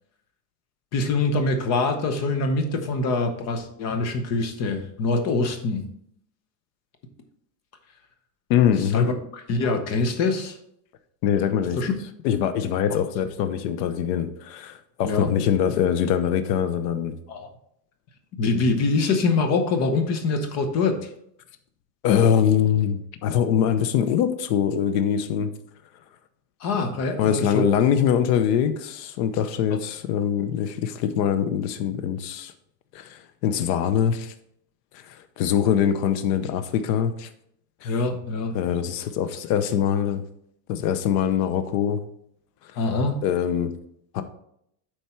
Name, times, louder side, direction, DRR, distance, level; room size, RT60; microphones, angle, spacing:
voice 1, 0.9-5.9 8.8-9.1 9.5-10.6 11.7-11.9 15.0-15.3 17.3-17.5 18.4-21.1 26.6-27.7 29.7-29.8 37.8-38.5 42.8-43.2, left 3 dB, 35° left, 6 dB, 0.8 m, -24 dB
voice 2, 8.5-9.1 11.2-11.8 12.2-17.2 22.0-25.5 27.2-32.5 32.9-34.3 35.4-37.3 37.8-37.9 38.5-40.2 40.7-42.0 43.2-43.7 44.1-44.2, left 8 dB, 80° left, 10 dB, 0.9 m, -23 dB
8.1 x 4.5 x 4.4 m, 0.72 s
cardioid pair, 175°, 48 cm